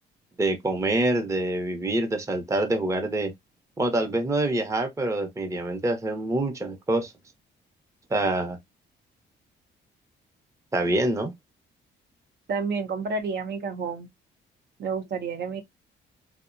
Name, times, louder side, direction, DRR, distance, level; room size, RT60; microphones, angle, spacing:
voice 1, 0.4-3.3 3.8-7.1 8.1-8.6 10.7-11.3, right 2 dB, 15° right, 0.6 m, -26 dB
voice 2, 12.5-14.1 14.8-15.6, right 4 dB, 60° right, 0.6 m, -30 dB
2.6 x 2.1 x 2.4 m
cardioid pair, 90°, 20 cm